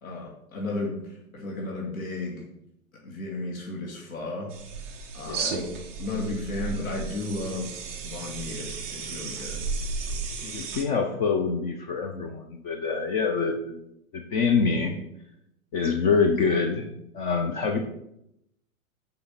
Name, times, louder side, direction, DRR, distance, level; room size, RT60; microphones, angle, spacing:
voice 1, 0.0-2.5 3.0-4.5 5.1-5.5 6.0-7.7 8.0-9.6, left 2 dB, 70° left, -2 dB, 2.4 m, -34 dB
sound 1, 4.5-10.8, right 4 dB, 10° right, 0.3 m, -34 dB
voice 2, 5.3-5.6 10.4-13.8 14.1-14.9 15.7-16.9 17.1-17.8, left 5 dB, 35° left, 4 dB, 0.9 m, -25 dB
6.8 x 5.3 x 5.9 m, 0.81 s
hypercardioid pair, 130°, 43 cm